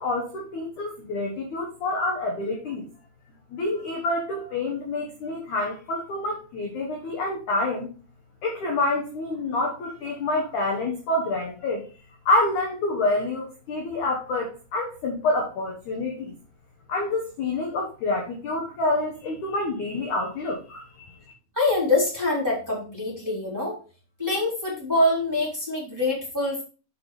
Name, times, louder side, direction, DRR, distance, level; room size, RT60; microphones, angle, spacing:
voice 1, 0.0-2.8 3.5-7.9 8.4-11.8 12.3-16.3 16.9-21.2, left 2 dB, 65° left, 0 dB, 2.0 m, -27 dB
voice 2, 21.5-23.8 24.2-26.6, left 2 dB, 5° right, -5 dB, 2.8 m, -25 dB
6.9 x 6.0 x 4.9 m, 0.36 s
omnidirectional pair, 5.1 m